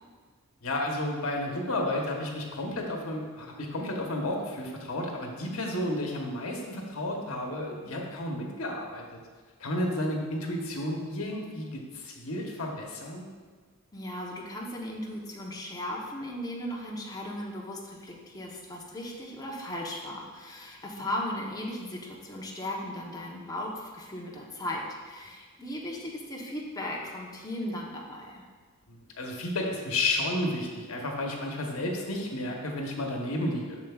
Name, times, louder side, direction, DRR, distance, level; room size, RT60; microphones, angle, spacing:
voice 1, 0.6-9.2 9.6-13.3 21.0-21.1 28.9-33.8, left 1 dB, 85° left, 0 dB, 1.1 m, -32 dB
voice 2, 13.9-28.5, left 1 dB, 20° left, -2 dB, 0.9 m, -37 dB
7.2 x 6.5 x 2.4 m, 1.5 s
head